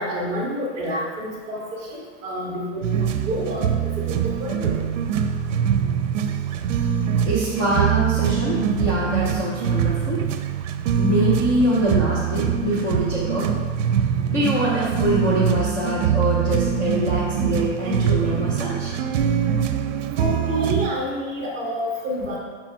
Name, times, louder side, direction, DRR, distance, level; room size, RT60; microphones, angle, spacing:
voice 1, 0.0-3.7 4.0-4.8 20.2-22.4, equal, 20° right, -3 dB, 1.5 m, -28 dB
sound 1, 2.8-20.9, right 8 dB, 80° right, 0.6 m, -23 dB
voice 2, 7.3-10.2 11.0-13.5 14.3-18.9 20.5-20.6, right 1 dB, 15° left, -8 dB, 0.6 m, -24 dB
5.9 x 4.6 x 4.4 m, 1.5 s
supercardioid pair, 175°, 37 cm